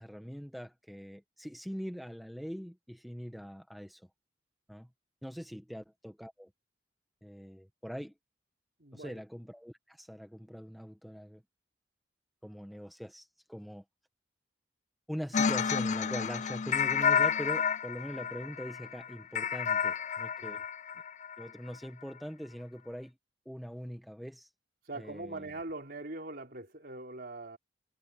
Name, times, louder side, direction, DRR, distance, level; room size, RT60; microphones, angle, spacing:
voice 1, 0.0-4.1 4.7-4.9 5.2-6.5 7.2-8.1 8.9-11.4 12.4-13.8 15.1-20.6 21.4-23.2 23.4-24.5 24.9-25.5, equal, ahead, 1.5 m, -42 dB
voice 2, 8.8-9.2 20.4-20.6 24.8-27.6, right 2 dB, 55° right, 4.2 m, -42 dB
sound 1, 15.3-21.5, left 7 dB, 40° left, 0.5 m, -30 dB
head